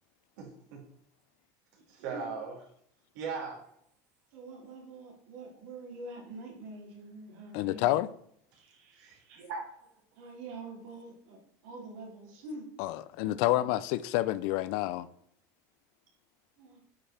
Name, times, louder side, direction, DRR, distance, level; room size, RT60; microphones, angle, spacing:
voice 1, 0.4-0.8 1.9-2.5 3.1-3.6 8.5-9.6, right 5 dB, 75° right, 3.4 m, -39 dB
voice 2, 2.0-2.3 4.3-8.0 10.1-12.7 13.2-13.7 16.6-16.8, right 2 dB, 60° right, 3.2 m, -45 dB
voice 3, 7.5-8.1 12.8-15.1, left 16 dB, 55° left, 0.4 m, -28 dB
8.8 x 5.2 x 4.4 m
cardioid pair, 165°, 9 cm